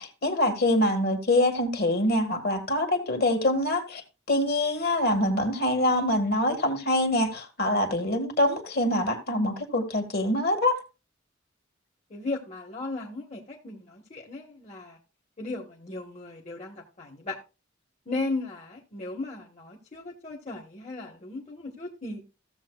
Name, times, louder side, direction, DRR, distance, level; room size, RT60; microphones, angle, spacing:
voice 1, 0.0-4.0 4.3-10.8, left 1 dB, 50° left, 1.8 m, -25 dB
voice 2, 12.1-15.0 15.4-17.4 18.1-22.2, left 2 dB, 35° left, 1.3 m, -36 dB
15.0 x 7.5 x 2.4 m
head